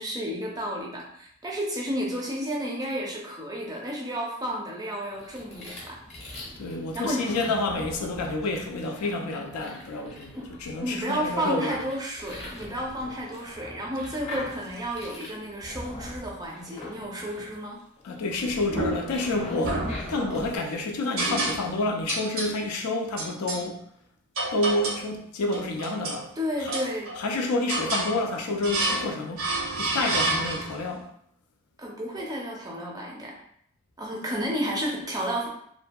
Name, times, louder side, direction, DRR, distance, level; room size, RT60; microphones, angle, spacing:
voice 1, 0.0-6.0 6.9-7.3 10.3-10.5 10.8-17.8 26.4-27.1 31.8-33.3 34.0-35.5, equal, 15° right, 0.5 m, -32 dB
sound 1, 5.1-20.6, left 1 dB, 30° left, 0.7 m, -42 dB
voice 2, 6.6-11.8 18.0-23.9 24.5-26.3 26.6-26.7 27.2-29.5 29.7-31.1, left 2 dB, 85° left, 0.4 m, -29 dB
sound 2, 18.7-19.2 19.6-20.5 21.2-21.8 22.1-22.5 23.2-23.6 24.3-25.1 25.5-26.2 26.7-27.3 27.7-28.1 28.6-29.1 29.4-30.8, right 2 dB, 65° right, 0.7 m, -29 dB
2.6 x 2.6 x 2.2 m
head